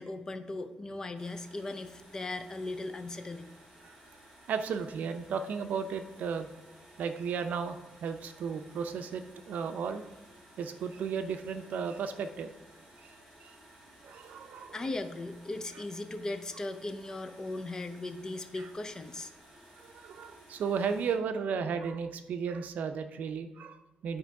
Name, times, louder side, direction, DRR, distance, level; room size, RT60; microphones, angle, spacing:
voice 1, 0.0-3.5 14.7-19.3, left 2 dB, 25° left, 9 dB, 0.5 m, -38 dB
sound 1, 1.2-21.1, right 1 dB, 15° right, 3.3 m, -56 dB
voice 2, 4.5-6.5 7.0-10.0 10.6-12.5 13.0-13.1 13.4-13.5 14.0-14.8 18.6-18.7 19.8-24.2, right 6 dB, 70° right, 8 dB, 0.6 m, -34 dB
11.5 x 4.5 x 4.7 m, 1.0 s
wide cardioid pair, 160°, 3 cm